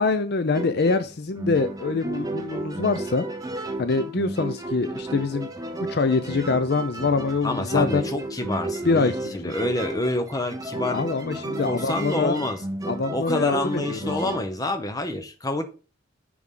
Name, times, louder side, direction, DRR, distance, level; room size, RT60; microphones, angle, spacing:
voice 1, 0.0-3.3 3.8-5.5 5.9-8.1 8.8-9.5 10.9-12.4 12.9-14.1, left 4 dB, 55° left, 11 dB, 0.5 m, -24 dB
sound 1, 0.5-14.4, right 2 dB, 20° right, 0.8 m, -33 dB
voice 2, 7.4-11.0 11.6-12.6 13.1-15.6, left 2 dB, 20° left, 7 dB, 0.9 m, -27 dB
9.6 x 4.7 x 3.8 m, 0.35 s
head